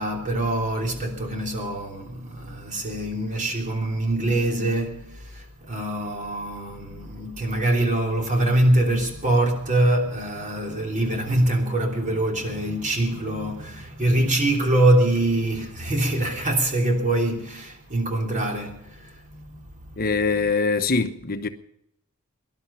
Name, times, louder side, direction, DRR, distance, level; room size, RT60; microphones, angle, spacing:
voice 1, 0.0-19.6 20.2-20.5, right 1 dB, 35° right, 3.2 m, -24 dB
voice 2, 20.0-21.5, left 4 dB, 45° left, 0.9 m, -23 dB
19.5 x 11.5 x 5.6 m
head